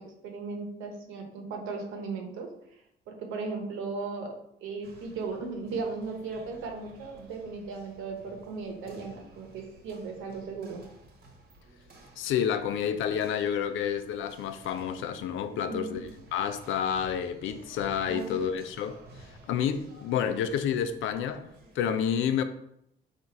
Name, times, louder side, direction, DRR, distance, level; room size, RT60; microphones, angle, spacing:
voice 1, 0.0-2.5 3.1-4.3 4.6-10.8 15.5-16.0 18.0-18.4, right 4 dB, 90° right, 0.9 m, -37 dB
sound 1, 4.8-21.8, right 2 dB, 50° right, 1.1 m, -53 dB
voice 2, 12.2-19.0 19.5-21.5 21.8-22.4, left 8 dB, 80° left, 0.4 m, -29 dB
4.0 x 2.5 x 4.5 m
cardioid pair, 90°, 20 cm